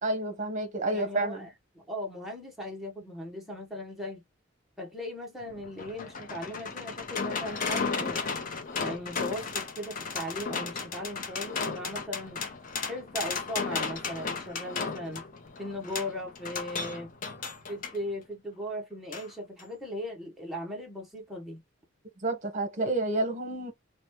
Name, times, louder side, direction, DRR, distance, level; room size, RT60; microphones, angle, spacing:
voice 1, 0.0-1.4 22.2-23.7, right 2 dB, 40° right, 0.9 m, -29 dB
voice 2, 0.9-1.5 1.7-4.2 4.8-8.3 8.7-12.4 12.8-15.2 15.6-17.1 17.7-21.6, left 1 dB, ahead, 0.8 m, -38 dB
sound 1, 5.4-18.0 19.1-19.3 19.6-19.7, left 5 dB, 40° left, 0.6 m, -34 dB
3.0 x 2.1 x 3.0 m
head